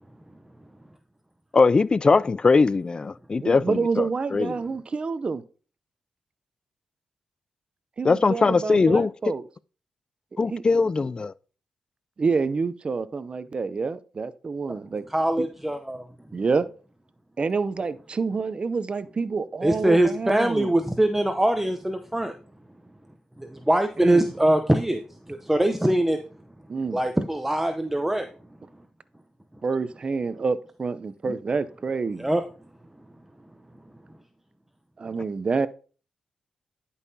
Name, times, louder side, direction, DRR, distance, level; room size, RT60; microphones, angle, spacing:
voice 1, 1.5-4.5 8.0-9.1 10.4-11.3 31.3-31.4, left 4 dB, 35° left, 0.3 m, -21 dB
voice 2, 3.4-5.4 8.0-9.4 10.5-10.6 12.2-15.0 15.4-15.5 16.3-16.7 17.4-20.7 24.0-24.3 26.7-27.0 29.6-32.3 35.0-35.7, right 4 dB, 45° right, 0.6 m, -28 dB
voice 3, 15.1-16.1 19.6-22.3 23.4-26.2 26.9-28.3 32.2-32.4, right 1 dB, 10° right, 0.7 m, -23 dB
10.5 x 5.6 x 2.7 m
cardioid pair, 55°, 2 cm